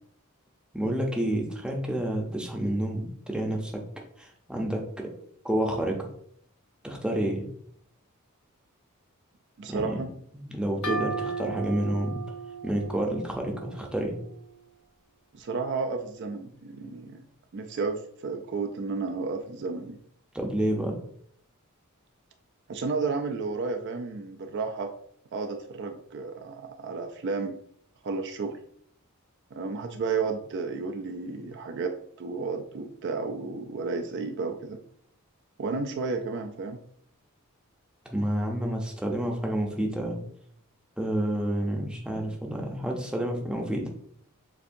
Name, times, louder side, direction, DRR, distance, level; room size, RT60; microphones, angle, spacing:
voice 1, 0.7-3.8 4.2-5.1 5.4-6.1 6.8-7.5 9.7-10.0 10.3-12.2 12.6-14.2 20.3-21.0 38.1-40.2 41.0-43.9, right 1 dB, 5° right, 0 dB, 0.6 m, -29 dB
voice 2, 9.6-10.1 15.3-17.3 17.5-20.0 22.7-24.9 25.3-27.5 28.0-28.5 29.5-31.9 32.2-34.8 35.6-36.8, right 4 dB, 50° right, 5 dB, 0.4 m, -32 dB
sound 1, 10.8-14.4, right 4 dB, 75° left, 0.8 m, -36 dB
6.9 x 2.6 x 2.6 m, 0.66 s
head